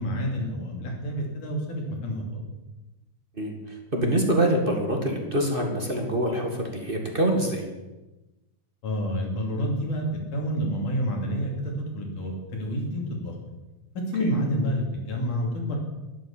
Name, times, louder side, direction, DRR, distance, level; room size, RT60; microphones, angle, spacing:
voice 1, 0.0-2.5 8.8-10.1 10.3-13.3 14.0-15.8, equal, 85° left, 0 dB, 4.4 m, -28 dB
voice 2, 3.4-7.6 14.2-14.3, right 1 dB, 20° right, 1 dB, 1.7 m, -25 dB
12.0 x 11.5 x 7.3 m, 1.1 s
omnidirectional pair, 3.5 m